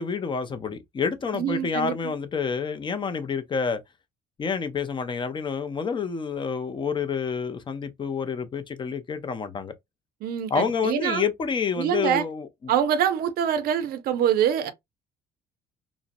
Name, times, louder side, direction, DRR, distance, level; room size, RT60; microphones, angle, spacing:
voice 1, 0.0-3.8 4.4-9.7 10.5-12.7, left 5 dB, 30° left, 0.5 m, -28 dB
voice 2, 1.3-2.1 10.2-11.2 11.8-12.2 12.7-14.7, right 9 dB, 65° right, 0.5 m, -25 dB
2.5 x 2.0 x 2.5 m
cardioid pair, 110°, 17 cm